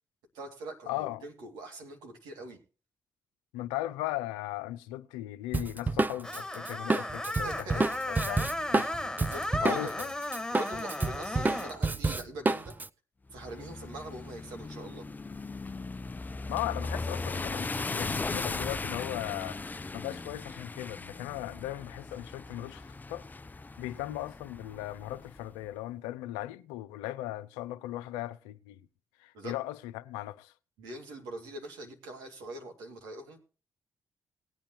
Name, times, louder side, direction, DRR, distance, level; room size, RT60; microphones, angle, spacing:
voice 1, 0.3-2.6 7.4-7.9 9.1-10.0 10.5-12.8 13.3-15.0 29.3-29.6 30.8-33.4, right 2 dB, 85° right, 2.3 m, -43 dB
voice 2, 0.9-1.2 3.5-8.9 9.2-10.1 16.5-19.6 19.9-23.2 23.8-28.8 29.2-30.5, left 15 dB, 90° left, 0.6 m, -38 dB
Drum kit, 5.5-10.1 10.3-12.9, right 3 dB, 25° right, 0.7 m, -29 dB
Screech, 6.2-11.8, left 1 dB, 5° left, 1.7 m, -35 dB
sound 1, 13.3-25.5, left 3 dB, 25° left, 0.5 m, -38 dB
19.0 x 8.7 x 2.9 m
hypercardioid pair, 50°, 7 cm